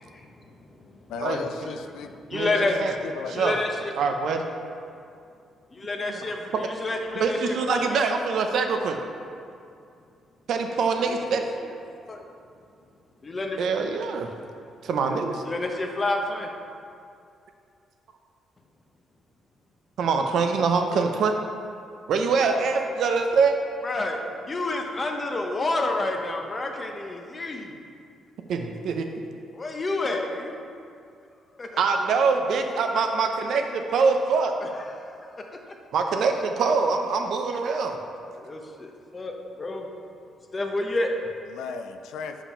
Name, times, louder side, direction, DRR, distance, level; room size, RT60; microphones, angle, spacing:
voice 1, 1.1-2.1 2.5-3.5 41.5-42.4, left 6 dB, 85° left, 7 dB, 0.4 m, -35 dB
voice 2, 2.3-2.8 3.3-3.9 5.7-8.1 11.1-11.2 11.6-11.7 12.1-12.2 13.2-13.6 15.4-16.5 22.3-22.8 23.8-24.2 24.5-27.7 29.5-30.6 31.6-31.7 34.6-34.9 38.3-39.3 39.6-39.8 40.5-41.1, left 2 dB, 30° left, 3 dB, 0.8 m, -29 dB
voice 3, 4.0-4.4 6.0-6.1 7.2-9.0 10.5-11.4 13.6-14.3 14.8-15.4 20.0-21.3 22.1-23.5 28.5-29.1 31.8-34.5 35.9-38.0, right 5 dB, 70° right, 5 dB, 0.6 m, -24 dB
5.3 x 5.0 x 5.5 m, 2.4 s
cardioid pair, 90°, 0 cm